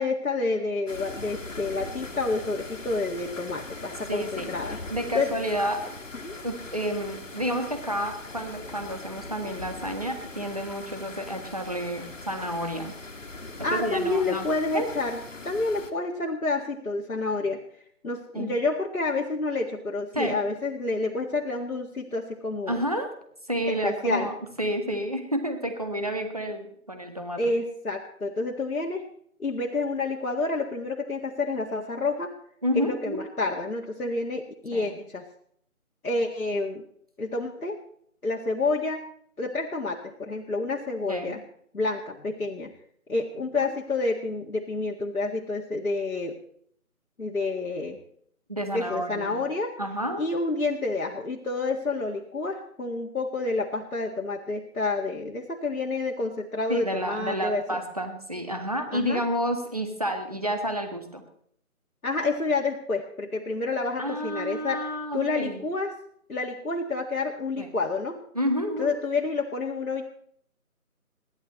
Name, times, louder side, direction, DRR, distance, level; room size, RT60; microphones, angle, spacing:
voice 1, 0.0-4.8 5.1-5.3 6.2-6.4 13.6-17.6 18.0-22.8 23.7-24.3 27.4-29.1 29.4-32.3 32.8-35.2 36.0-36.8 37.2-37.8 38.2-39.0 39.4-41.4 41.7-42.7 43.1-46.4 47.2-48.0 48.7-49.7 50.2-57.6 58.9-59.2 62.0-65.9 66.3-68.2 68.8-70.1, left 3 dB, 75° left, -1 dB, 2.1 m, -29 dB
sound 1, 0.9-15.9, left 3 dB, 60° left, 2.3 m, -41 dB
voice 2, 4.1-4.5 4.9-5.8 6.4-12.9 13.7-14.5 14.7-14.9 18.3-18.6 20.1-20.4 22.7-23.1 23.5-27.4 32.6-33.2 34.7-34.9 41.1-41.4 43.6-43.7 48.5-49.4 49.8-50.2 56.7-61.2 64.0-65.6 67.6-67.7 68.3-68.9, equal, 25° right, 5 dB, 1.6 m, -30 dB
29.0 x 11.0 x 3.1 m, 0.64 s
figure-of-eight pair, 180°, 44 cm